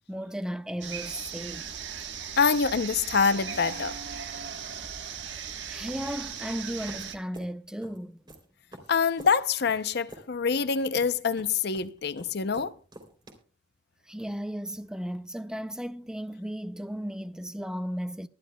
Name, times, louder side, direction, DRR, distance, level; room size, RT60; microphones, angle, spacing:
voice 1, 0.1-1.7 5.7-8.2 14.1-18.3, equal, 5° right, 0.4 m, -35 dB
sound 1, 0.8-7.2, right 7 dB, 75° right, 1.3 m, -38 dB
voice 2, 2.4-4.0 8.9-12.7, left 5 dB, 65° left, 0.6 m, -25 dB
sound 2, 6.9-13.3, right 1 dB, 25° right, 3.2 m, -48 dB
23.0 x 11.0 x 2.3 m
head